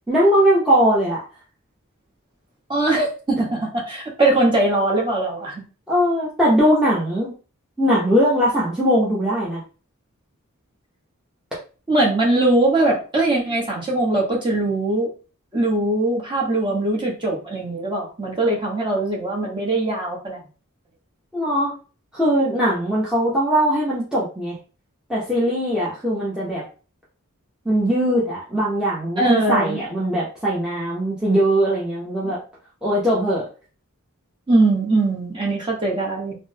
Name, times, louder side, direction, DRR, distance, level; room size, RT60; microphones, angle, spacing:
voice 1, 0.1-1.3 5.9-7.3 7.8-9.6 21.3-21.7 22.1-24.6 25.1-26.6 27.6-32.4 32.8-33.5, equal, 5° right, -8 dB, 0.7 m, -20 dB
voice 2, 2.7-5.6 11.9-15.1 15.5-20.4 29.2-29.8 32.2-32.3 34.5-36.4, right 2 dB, 20° right, -3 dB, 1.0 m, -21 dB
3.7 x 2.1 x 2.7 m, 0.35 s
head